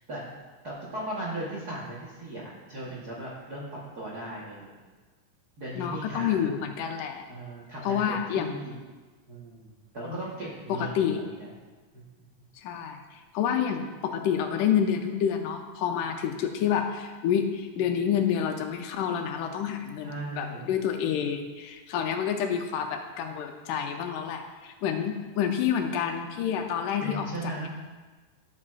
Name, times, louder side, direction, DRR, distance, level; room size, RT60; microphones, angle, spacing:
voice 1, 0.6-4.8 5.6-6.4 7.3-8.8 9.3-11.5 11.9-12.0 20.0-20.7 27.0-27.7, right 1 dB, 70° right, -6 dB, 0.9 m, -37 dB
voice 2, 5.8-7.2 7.8-8.6 10.1-10.2 10.7-11.2 12.6-13.0 13.3-27.3 27.6-27.7, left 8 dB, 90° left, 5 dB, 2.2 m, -28 dB
12.0 x 7.4 x 2.4 m, 1.3 s
omnidirectional pair, 3.7 m